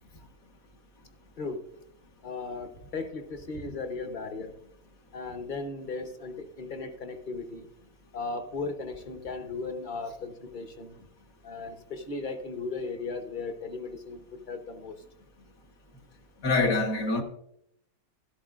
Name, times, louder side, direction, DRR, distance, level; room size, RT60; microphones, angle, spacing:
voice 1, 2.2-4.5 5.1-7.7 8.1-11.0 11.4-15.0, left 3 dB, 40° left, 0.8 m, -36 dB
voice 2, 16.4-17.2, left 3 dB, 70° left, 1.7 m, -25 dB
13.0 x 12.0 x 2.4 m
omnidirectional pair, 1.6 m